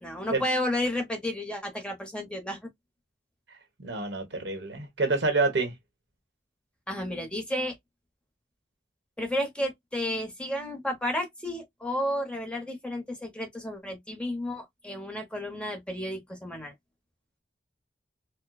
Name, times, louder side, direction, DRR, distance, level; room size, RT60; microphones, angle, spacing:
voice 1, 0.0-2.6 6.9-7.7 9.2-16.7, left 1 dB, 5° left, 1.0 m, -32 dB
voice 2, 3.8-5.7, right 3 dB, 80° right, 1.3 m, -27 dB
4.5 x 2.3 x 2.3 m
head